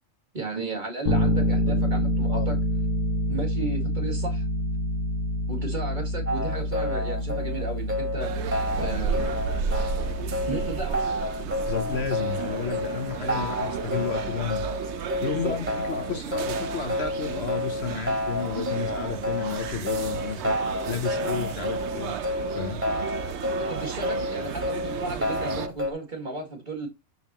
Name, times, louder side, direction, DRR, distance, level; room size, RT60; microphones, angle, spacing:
voice 1, 0.3-2.6 3.3-4.4 5.5-8.3 8.8-9.3 10.5-11.0 15.3-15.6 23.6-26.9, right 3 dB, 35° right, 2.2 m, -34 dB
Bass guitar, 1.1-10.9, equal, 85° left, 1.7 m, -27 dB
sound 1, 6.3-25.9, left 1 dB, 10° right, 3.3 m, -30 dB
sound 2, 8.2-25.7, right 7 dB, 65° right, 1.0 m, -33 dB
voice 2, 11.7-14.7 15.2-20.6 20.9-22.1 22.5-22.9, left 7 dB, 55° left, 1.1 m, -32 dB
12.0 x 5.6 x 3.0 m
omnidirectional pair, 1.3 m